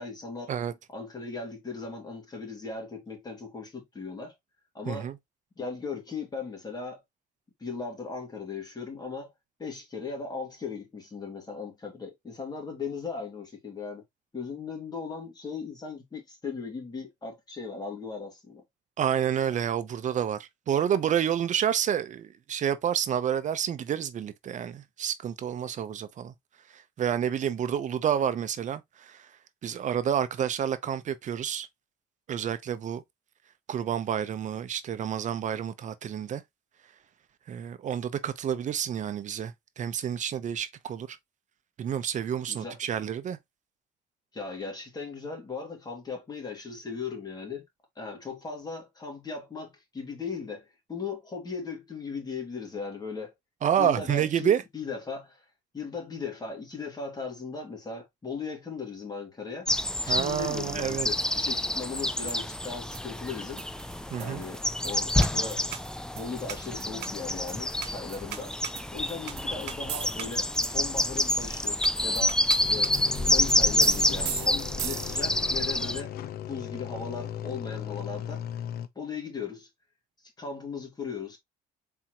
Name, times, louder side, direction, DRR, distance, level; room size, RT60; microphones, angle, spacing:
voice 1, 0.0-0.5 0.9-4.3 4.7-5.1 5.6-7.0 7.6-9.3 9.6-14.0 14.3-18.6 42.5-42.8 44.3-47.6 48.0-53.3 53.8-55.4 55.7-59.7 60.0-63.6 64.2-65.6 66.1-68.6 68.9-72.9 73.3-76.1 76.5-78.5 79.0-79.7 80.4-81.4, left 4 dB, 25° left, 2.4 m, -38 dB
voice 2, 19.0-26.3 26.7-29.3 29.6-31.7 32.3-33.0 33.7-36.4 37.5-41.2 41.8-43.4 53.6-54.6 60.1-61.1 64.1-64.4, right 9 dB, 45° right, 0.7 m, -29 dB
sound 1, 59.7-76.0, left 1 dB, 5° left, 0.3 m, -28 dB
sound 2, 62.0-75.5, right 12 dB, 80° right, 0.9 m, -41 dB
sound 3, 72.6-78.9, left 10 dB, 65° left, 0.7 m, -38 dB
4.4 x 3.6 x 2.9 m
cardioid pair, 110°, 17 cm